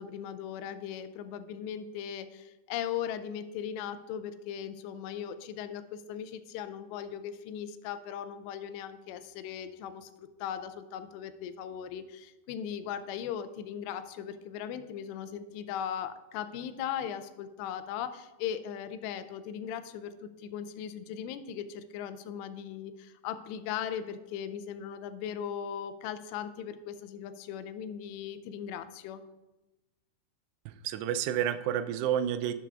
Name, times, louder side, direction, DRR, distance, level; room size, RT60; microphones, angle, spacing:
voice 1, 0.0-29.2, left 9 dB, 90° left, 11 dB, 2.8 m, -38 dB
voice 2, 30.7-32.5, right 10 dB, 85° right, 11 dB, 2.7 m, -30 dB
17.0 x 6.9 x 2.4 m, 1.1 s
omnidirectional pair, 4.9 m